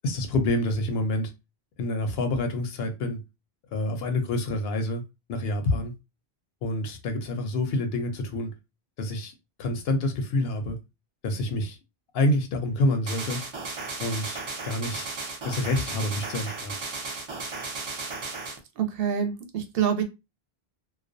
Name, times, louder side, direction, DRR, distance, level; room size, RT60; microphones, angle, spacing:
voice 1, 0.0-1.3 1.8-3.2 3.7-5.0 5.3-5.9 6.6-8.5 9.0-9.3 9.6-10.8 11.2-11.8 12.1-13.4 14.0-15.1 15.4-16.8, left 1 dB, 75° left, 0.8 m, -27 dB
sound 1, 13.1-18.6, right 3 dB, 45° right, 0.3 m, -35 dB
voice 2, 18.8-20.0, right 8 dB, 70° right, 0.7 m, -26 dB
2.3 x 2.1 x 2.5 m
omnidirectional pair, 1.1 m